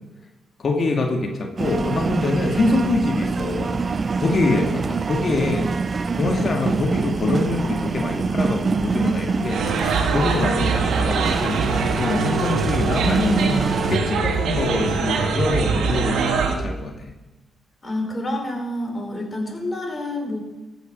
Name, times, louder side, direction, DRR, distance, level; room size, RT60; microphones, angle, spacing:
voice 1, 0.6-3.8 4.2-5.6 6.2-17.1, left 2 dB, 55° left, 3 dB, 1.8 m, -24 dB
sound 1, 1.6-14.0, right 4 dB, 45° right, 0.5 m, -25 dB
sound 2, 9.5-16.6, right 4 dB, 75° right, 1.3 m, -23 dB
voice 2, 17.8-20.4, left 1 dB, 35° left, 2 dB, 3.9 m, -28 dB
14.5 x 7.1 x 5.1 m, 1.1 s
supercardioid pair, 55°, 0 cm